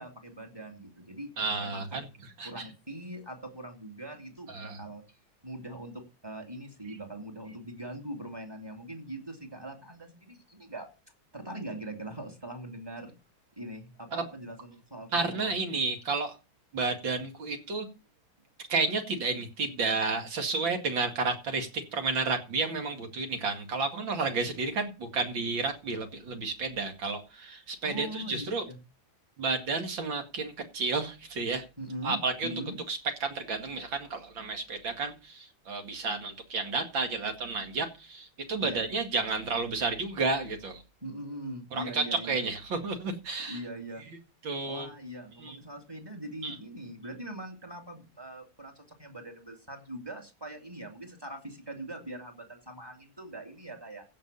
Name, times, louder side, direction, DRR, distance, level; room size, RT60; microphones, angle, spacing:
voice 1, 0.0-1.3 1.6-2.0 2.4-5.0 5.4-10.9 11.3-13.1 13.6-15.5 27.8-28.8 31.8-32.2 32.4-32.8 38.6-38.8 41.0-42.4 43.5-44.0 44.6-54.0, right 1 dB, 10° right, 5 dB, 2.4 m, -42 dB
voice 2, 1.4-2.1 2.4-2.7 4.5-4.8 14.1-14.2 15.1-16.4 16.7-17.9 18.7-28.6 29.4-31.6 32.0-32.5 32.9-40.8 41.7-43.6 44.4-44.9 45.4-45.6 46.4-46.6, right 3 dB, 60° right, 6 dB, 2.7 m, -31 dB
15.5 x 5.9 x 6.8 m, 0.31 s
omnidirectional pair, 2.4 m